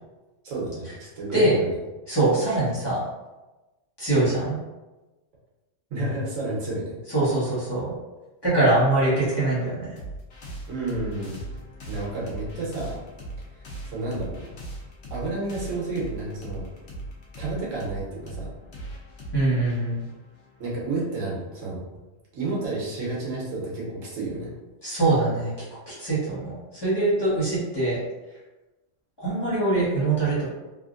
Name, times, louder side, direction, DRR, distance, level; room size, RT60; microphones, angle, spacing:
voice 1, 0.4-1.7 5.9-7.0 10.7-11.4 11.9-13.0 13.8-14.5 15.1-16.7 17.4-18.5 20.6-21.8 22.3-24.5, right 2 dB, 85° right, -5 dB, 1.3 m, -31 dB
voice 2, 2.1-3.0 4.0-4.6 7.1-7.9 8.4-9.9 19.3-20.0 24.8-25.5 25.9-28.0 29.2-30.5, right 2 dB, 20° left, -11 dB, 1.1 m, -23 dB
sound 1, 10.0-21.0, right 2 dB, 65° left, 1.0 m, -39 dB
3.2 x 2.5 x 2.5 m, 1.1 s
omnidirectional pair, 1.3 m